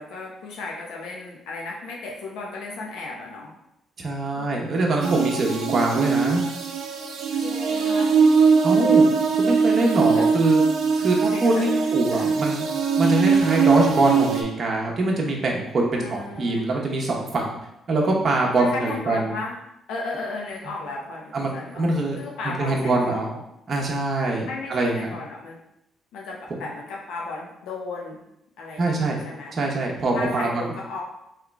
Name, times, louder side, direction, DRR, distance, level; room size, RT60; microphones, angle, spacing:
voice 1, 0.0-3.5 4.3-4.8 7.3-8.2 10.1-10.3 11.2-12.3 15.9-16.6 18.4-19.6 19.9-21.8 22.2-23.4 24.5-25.6 26.1-28.2 28.6-29.6 30.1-31.0, left 3 dB, 90° left, -2 dB, 0.7 m, -35 dB
voice 2, 4.0-6.4 8.6-9.0 9.4-10.6 11.0-12.7 13.0-17.6 17.9-19.3 21.3-22.2 22.6-23.3 23.7-25.2 28.8-29.2 29.5-30.7, right 2 dB, 45° right, -1 dB, 1.0 m, -23 dB
sound 1, 5.0-14.4, right 5 dB, 75° right, 0.5 m, -21 dB
3.7 x 3.1 x 3.4 m, 0.82 s
cardioid pair, 90°, 0 cm